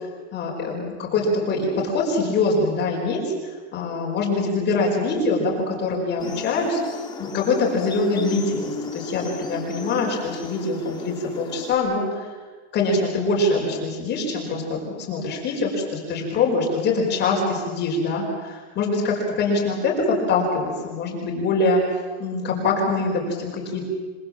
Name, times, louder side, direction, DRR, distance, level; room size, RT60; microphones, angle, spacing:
voice 1, 0.3-3.3 3.7-6.8 7.2-12.3 12.7-21.8 22.2-23.8, left 3 dB, 30° left, -2 dB, 5.3 m, -24 dB
sound 1, 6.2-11.7, left 4 dB, 15° left, 2.2 m, -36 dB
28.5 x 21.5 x 7.5 m, 1.5 s
supercardioid pair, 170°, 33 cm